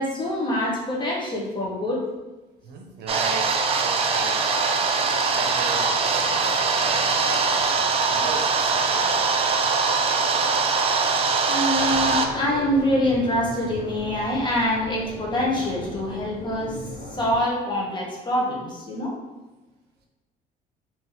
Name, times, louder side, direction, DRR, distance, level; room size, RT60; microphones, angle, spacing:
voice 1, 0.0-2.0 10.4-10.5 11.5-19.1, left 1 dB, 25° left, -3 dB, 1.1 m, -25 dB
voice 2, 2.6-4.8 5.3-7.8 8.1-9.3, right 4 dB, 75° right, 1 dB, 0.7 m, -35 dB
sound 1, 3.1-12.3, right 4 dB, 35° right, 0.4 m, -22 dB
sound 2, 11.7-17.4, left 1 dB, 70° left, 1.4 m, -37 dB
3.6 x 2.9 x 3.1 m, 1.1 s
cardioid pair, 110°, 17 cm